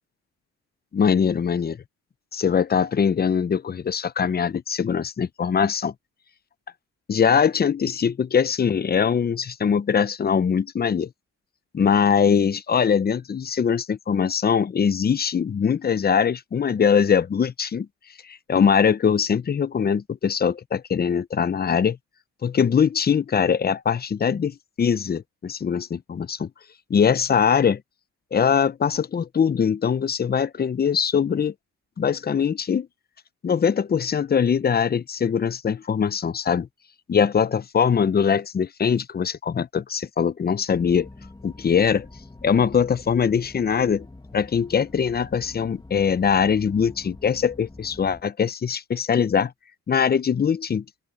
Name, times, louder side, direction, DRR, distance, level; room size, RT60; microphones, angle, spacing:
voice 1, 0.9-1.8 2.3-5.9 7.1-11.1 11.7-17.9 18.3-22.0 22.4-26.5 26.9-27.8 28.3-31.5 32.0-32.9 33.4-36.7 37.1-41.1 41.4-42.1 42.4-44.1 44.3-49.5 49.9-50.8, left 7 dB, 30° left, 0.7 m, -22 dB
sound 1, 40.7-48.2, left 2 dB, 15° left, 2.1 m, -45 dB
open air
cardioid pair, 90°, 30 cm